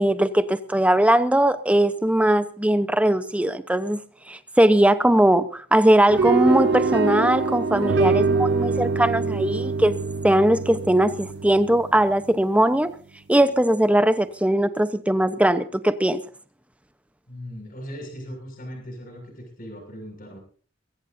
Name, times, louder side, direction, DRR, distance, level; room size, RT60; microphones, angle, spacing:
voice 1, 0.0-4.0 4.3-10.0 10.2-12.9 13.3-16.2, right 1 dB, 5° right, 0.9 m, -20 dB
sound 1, 6.1-12.3, right 4 dB, 60° right, 0.6 m, -24 dB
voice 2, 17.3-20.4, equal, 50° left, 6.7 m, -38 dB
21.5 x 16.5 x 2.7 m
head